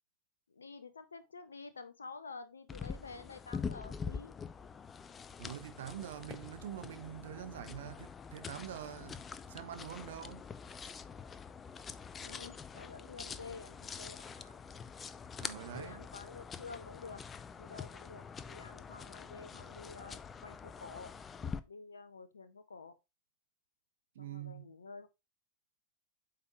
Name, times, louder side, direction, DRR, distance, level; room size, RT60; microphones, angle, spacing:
voice 1, 0.5-4.3 12.2-14.6 15.7-17.2 17.6-21.1 21.4-23.0 24.2-25.1, left 4 dB, 75° left, 0.6 m, -50 dB
sound 1, 2.7-21.6, left 6 dB, 20° left, 0.5 m, -45 dB
voice 2, 5.4-10.4 15.4-16.0 24.1-24.7, right 11 dB, 60° right, 0.8 m, -45 dB
8.2 x 4.8 x 3.1 m
figure-of-eight pair, 90°, 0 cm